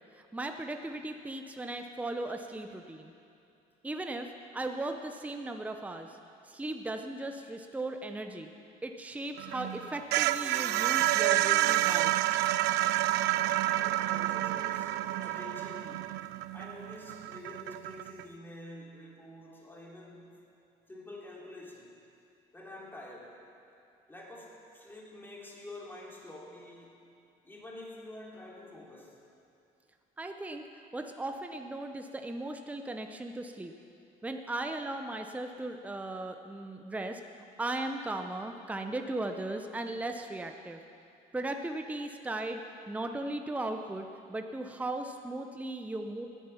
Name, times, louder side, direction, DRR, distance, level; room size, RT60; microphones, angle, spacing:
voice 1, 0.1-3.1 3.8-6.2 6.4-8.5 8.8-12.3 30.2-30.6 30.9-33.7 34.2-37.2 37.6-40.8 41.3-46.3, right 2 dB, 10° right, 5 dB, 0.7 m, -37 dB
sound 1, 9.4-18.2, right 15 dB, 85° right, 0.4 m, -29 dB
voice 2, 13.7-16.1 16.5-20.3 20.9-22.0 22.5-23.4 24.1-26.9 27.4-29.2, left 1 dB, 10° left, -3 dB, 3.2 m, -47 dB
19.0 x 9.2 x 5.7 m, 2.6 s
cardioid pair, 110°, 17 cm